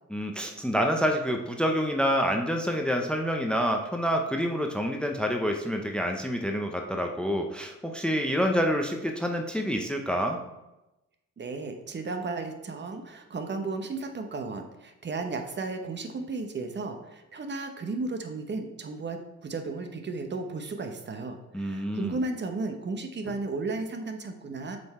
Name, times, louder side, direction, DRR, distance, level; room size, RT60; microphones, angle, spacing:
voice 1, 0.1-10.4 21.5-22.2, equal, 5° left, 3 dB, 0.7 m, -27 dB
voice 2, 11.4-24.8, right 3 dB, 35° right, 5 dB, 0.9 m, -34 dB
7.6 x 3.9 x 4.3 m, 0.98 s
cardioid pair, 90°, 30 cm